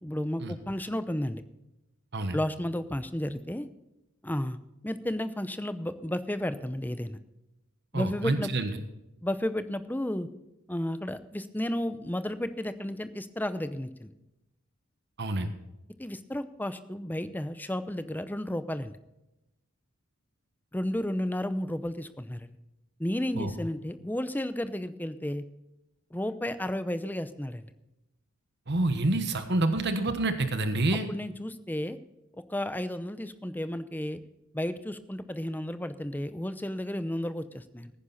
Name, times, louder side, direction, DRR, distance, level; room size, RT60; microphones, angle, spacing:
voice 1, 0.0-1.4 2.3-3.7 4.2-4.6 4.8-7.2 7.9-8.5 9.2-10.3 10.7-14.1 16.0-18.9 20.7-22.5 23.0-25.4 26.1-27.7 31.1-32.0 32.5-34.2 34.5-37.9, left 1 dB, 10° left, 12 dB, 0.7 m, -32 dB
voice 2, 7.9-8.7 15.2-15.5 23.3-23.5 28.7-31.1, right 2 dB, 55° right, 9 dB, 1.3 m, -27 dB
16.5 x 9.9 x 4.1 m, 0.94 s
head